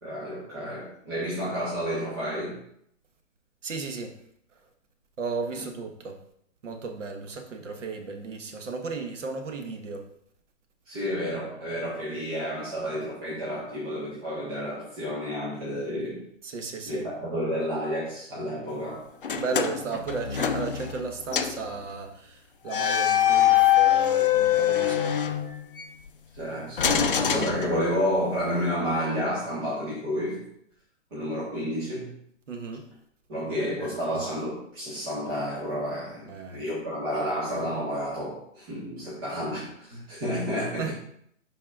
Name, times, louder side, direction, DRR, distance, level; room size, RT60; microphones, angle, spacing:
voice 1, 0.0-2.6 10.8-16.2 16.9-19.1 26.3-30.4 31.1-32.1 33.3-40.9, equal, 20° right, -9 dB, 1.2 m, -30 dB
voice 2, 3.6-4.1 5.2-6.2 6.6-10.1 16.4-17.0 19.3-25.4 32.5-32.8 36.3-36.6 40.7-40.9, right 4 dB, 65° right, 5 dB, 1.2 m, -34 dB
sound 1, 19.2-21.1 21.3-21.6 22.7-25.9 26.8-28.2, left 10 dB, 45° left, 0.4 m, -24 dB
11.0 x 4.2 x 2.4 m, 0.70 s
hypercardioid pair, 175°, 40 cm